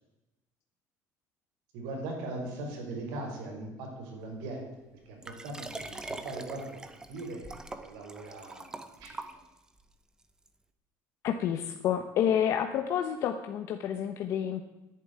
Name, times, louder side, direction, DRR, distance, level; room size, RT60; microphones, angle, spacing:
voice 1, 1.7-7.5 7.8-9.4, right 2 dB, 90° right, 1 dB, 5.7 m, -40 dB
Liquid, 5.2-9.8 10.5-10.6, right 2 dB, 10° right, 0.9 m, -43 dB
voice 2, 11.2-14.6, left 9 dB, 50° left, 6 dB, 1.0 m, -29 dB
12.0 x 11.0 x 9.7 m, 1.1 s
cardioid pair, 175°, 6 cm